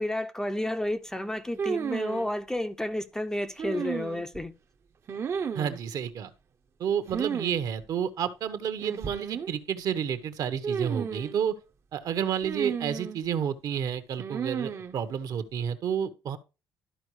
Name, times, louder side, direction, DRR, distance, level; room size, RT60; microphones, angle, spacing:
voice 1, 0.0-4.5, left 1 dB, 5° left, 0.5 m, -31 dB
sound 1, 1.6-2.3 3.6-4.4 5.1-5.8 7.1-7.6 7.8-7.9 8.8-9.5 10.6-11.4 12.4-13.2 14.2-14.9, right 7 dB, 40° right, 0.7 m, -33 dB
voice 2, 5.5-6.3 6.8-11.5 11.9-16.4, right 8 dB, 60° right, 1.0 m, -30 dB
12.5 x 4.6 x 3.1 m
cardioid pair, 135°, 7 cm